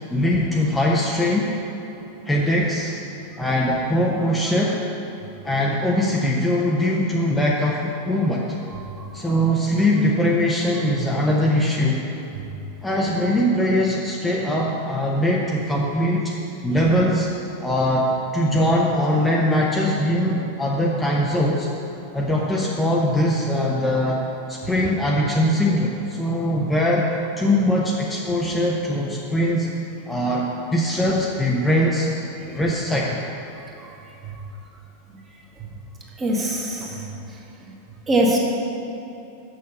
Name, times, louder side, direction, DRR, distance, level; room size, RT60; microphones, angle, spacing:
voice 1, 0.1-1.5 2.3-3.0 3.4-4.8 5.4-8.4 9.1-12.0 12.8-16.3 16.6-17.3 17.6-21.7 22.1-24.2 24.5-27.1 27.4-29.7 30.1-32.1 32.5-33.2 36.8-37.0, left 1 dB, 10° left, -3 dB, 0.7 m, -21 dB
voice 2, 9.0-9.4 34.3-34.4 36.2-37.1 38.1-38.4, right 1 dB, 20° right, -2 dB, 1.5 m, -23 dB
6.5 x 6.4 x 6.9 m, 3.0 s
figure-of-eight pair, 90°, 0 cm